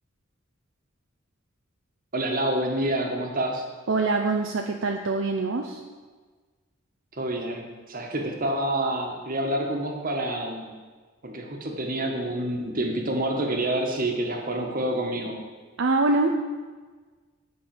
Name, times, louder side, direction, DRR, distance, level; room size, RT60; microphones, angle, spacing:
voice 1, 2.1-3.6 7.1-10.7 11.2-15.4, right 1 dB, 40° right, 2 dB, 1.6 m, -28 dB
voice 2, 3.9-5.8 15.8-16.4, right 3 dB, 65° right, 3 dB, 0.7 m, -24 dB
10.5 x 5.9 x 7.8 m, 1.4 s
head